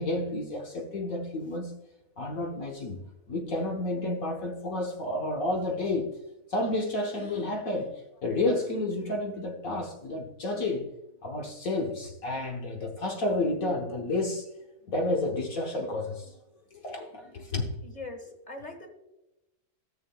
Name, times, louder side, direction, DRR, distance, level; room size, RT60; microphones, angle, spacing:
voice 1, 0.0-1.7 2.2-6.1 6.5-10.9 11.2-14.5 14.9-16.3 16.7-17.7, left 2 dB, 60° left, 0 dB, 1.5 m, -31 dB
voice 2, 17.9-18.9, left 2 dB, 30° left, 3 dB, 1.4 m, -41 dB
14.5 x 7.3 x 2.2 m, 0.92 s
omnidirectional pair, 1.7 m